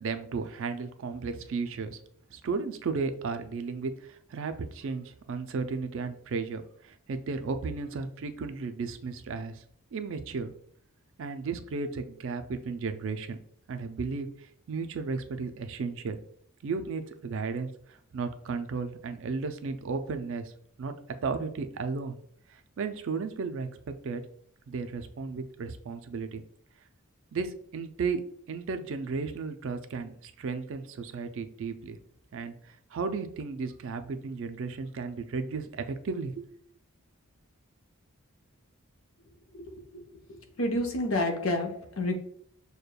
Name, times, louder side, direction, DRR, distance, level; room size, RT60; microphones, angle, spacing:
voice 1, 0.0-2.0 2.3-9.6 9.9-10.5 11.2-13.4 13.7-16.2 16.6-20.5 20.8-20.9 21.2-22.2 22.5-23.7 24.0-24.2 24.7-26.4 27.3-28.2 28.5-32.0 32.3-36.5, right 4 dB, 55° right, 9 dB, 0.3 m, -34 dB
voice 2, 40.3-42.2, left 1 dB, 60° left, 3 dB, 0.7 m, -29 dB
6.5 x 2.2 x 2.2 m, 0.63 s
head